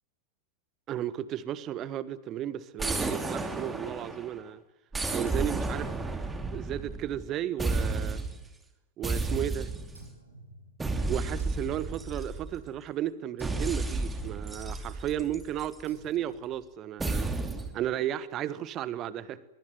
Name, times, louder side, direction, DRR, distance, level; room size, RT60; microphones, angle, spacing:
voice 1, 0.9-4.6 5.1-6.0 6.5-8.2 9.0-9.7 11.1-17.3 17.7-19.4, right 11 dB, 35° right, 1.5 m, -34 dB
sound 1, 2.8-4.4 4.9-7.3 7.6-8.4 9.0-10.1 10.8-12.7 13.4-15.8 17.0-17.8, right 3 dB, 10° right, 3.0 m, -32 dB
sound 2, 9.9-11.0 11.4-12.7 13.4-13.8 14.6-15.1 15.9-16.5, right 2 dB, 80° right, 6.0 m, -53 dB
24.0 x 22.5 x 8.0 m
figure-of-eight pair, 90°, 0 cm